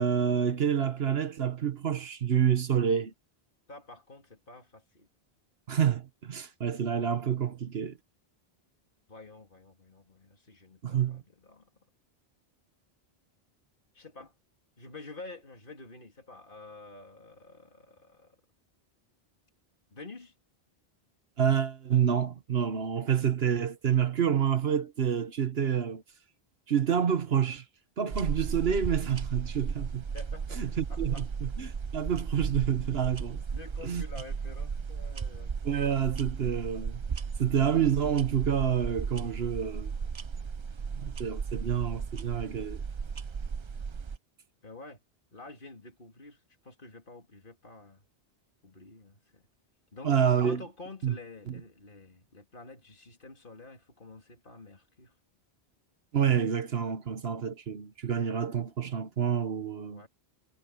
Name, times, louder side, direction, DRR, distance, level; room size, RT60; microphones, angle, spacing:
voice 1, 0.0-3.1 5.7-8.0 10.8-11.2 21.4-26.0 26.7-27.6 28.0-30.0 30.6-33.4 33.8-34.0 35.6-37.0 37.4-39.9 40.9-42.8 50.0-50.6 51.0-51.1 51.5-51.6 56.1-60.0, right 8 dB, 70° right, 1.3 m, -28 dB
voice 2, 3.7-5.1 9.1-11.7 13.9-14.3 14.8-18.4 19.9-20.3 30.1-31.3 33.5-35.6 44.6-45.0 45.3-48.0 48.6-49.4 49.9-50.1 50.4-55.2 59.9-60.1, left 3 dB, 55° left, 3.4 m, -49 dB
sound 1, 28.1-44.2, right 5 dB, 40° right, 0.4 m, -35 dB
omnidirectional pair, 1.1 m